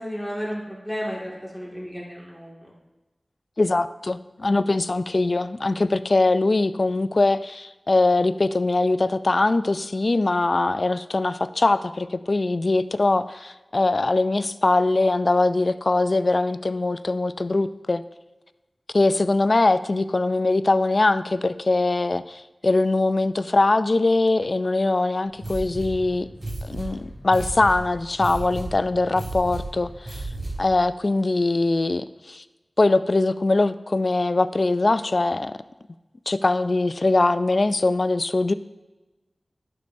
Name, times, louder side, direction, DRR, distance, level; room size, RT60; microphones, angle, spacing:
voice 1, 0.0-2.7, equal, 10° right, -4 dB, 1.9 m, -33 dB
voice 2, 3.6-18.0 18.9-26.3 26.6-30.3 30.6-32.4 32.8-35.6 36.3-38.5, left 2 dB, 55° left, 13 dB, 0.3 m, -22 dB
sound 1, 25.4-30.8, right 2 dB, 85° right, 2.9 m, -34 dB
11.5 x 6.6 x 2.6 m, 1.1 s
wide cardioid pair, 60°, 0 cm